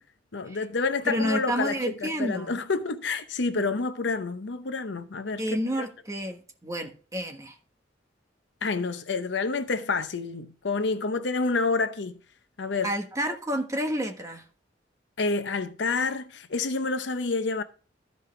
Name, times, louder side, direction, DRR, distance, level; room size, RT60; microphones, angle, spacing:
voice 1, 0.3-5.4 5.8-5.9 8.6-12.1 12.6-12.9 15.2-17.6, left 4 dB, 70° left, 0.8 m, -28 dB
voice 2, 1.0-2.6 3.5-3.6 5.4-7.5 12.8-14.4, equal, 20° right, 1.3 m, -30 dB
13.5 x 5.4 x 3.3 m
head